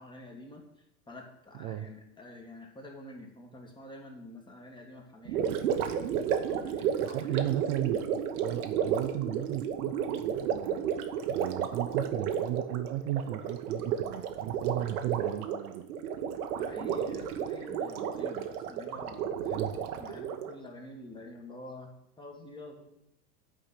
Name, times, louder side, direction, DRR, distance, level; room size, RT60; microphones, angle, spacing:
voice 1, 0.0-7.5 16.6-23.0, left 2 dB, 10° left, 2 dB, 1.5 m, -48 dB
Gurgling, 5.3-20.5, right 8 dB, 75° right, 1.1 m, -32 dB
voice 2, 7.0-8.0 8.4-11.0 11.3-15.9 19.5-19.8, right 13 dB, 40° right, 7 dB, 0.5 m, -35 dB
8.9 x 5.0 x 5.7 m, 0.79 s
supercardioid pair, 125°, 45 cm